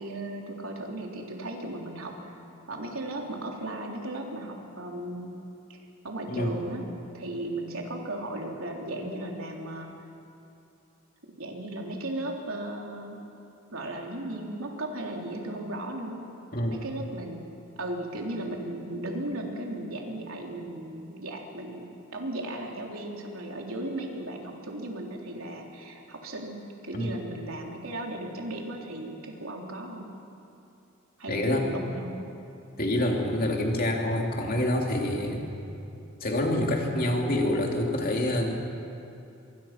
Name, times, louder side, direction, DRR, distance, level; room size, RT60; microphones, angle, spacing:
voice 1, 0.0-2.4 2.7-5.3 5.7-5.8 6.0-6.8 7.1-9.9 11.2-13.2 13.7-16.2 16.7-17.5 17.8-30.1 31.2-32.2, right 1 dB, 90° right, 0 dB, 3.5 m, -36 dB
voice 2, 16.5-16.9 26.9-27.1 31.3-31.7 32.8-35.5 36.2-38.5, left 1 dB, 45° left, 0 dB, 3.0 m, -27 dB
25.5 x 23.5 x 6.0 m, 2.7 s
head